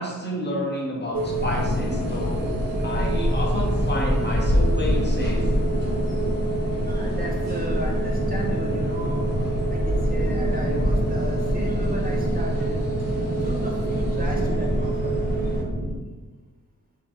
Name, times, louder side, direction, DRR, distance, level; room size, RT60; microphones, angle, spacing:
voice 1, 0.0-2.5 2.8-5.5, left 1 dB, 30° left, -2 dB, 0.5 m, -30 dB
sound 1, 1.1-15.6, right 1 dB, 80° right, 1.1 m, -27 dB
sound 2, 1.3-16.0, equal, 50° right, 0.8 m, -27 dB
voice 2, 6.9-9.4 9.7-12.8 13.4-15.3, equal, 30° right, -2 dB, 0.4 m, -35 dB
2.5 x 2.5 x 2.4 m, 1.3 s
wide cardioid pair, 80°, 33 cm